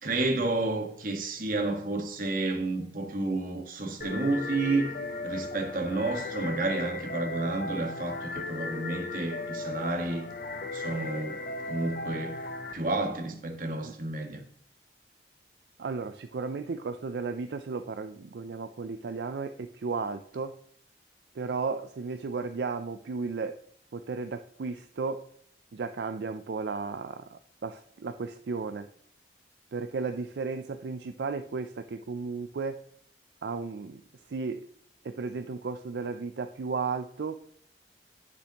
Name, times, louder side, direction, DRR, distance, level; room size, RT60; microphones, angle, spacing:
voice 1, 0.0-4.9 5.2-10.3 10.7-12.3 12.7-14.4, right 2 dB, 50° right, 1.4 m, -30 dB
sound 1, 4.0-12.7, left 2 dB, 50° left, 0.9 m, -36 dB
voice 2, 15.8-20.5 21.3-23.6 23.9-25.2 25.7-28.9 29.7-32.8 33.4-34.0 34.3-34.7 35.0-37.3, right 4 dB, 75° right, 0.4 m, -34 dB
10.0 x 6.8 x 2.9 m
head